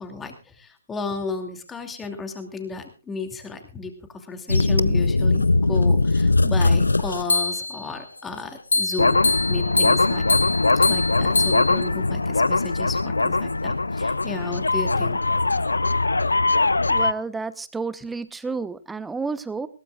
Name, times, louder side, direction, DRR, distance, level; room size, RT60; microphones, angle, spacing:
voice 1, 0.0-9.2 9.5-10.2 10.7-15.2, left 4 dB, 10° left, 6 dB, 2.7 m, -33 dB
sound 1, 4.5-7.8 8.7-17.1, left 3 dB, 85° left, 0.6 m, -20 dB
voice 2, 16.9-19.7, right 4 dB, 5° right, 15 dB, 0.9 m, -30 dB
20.5 x 17.5 x 2.4 m, 0.32 s
figure-of-eight pair, 135°, 0 cm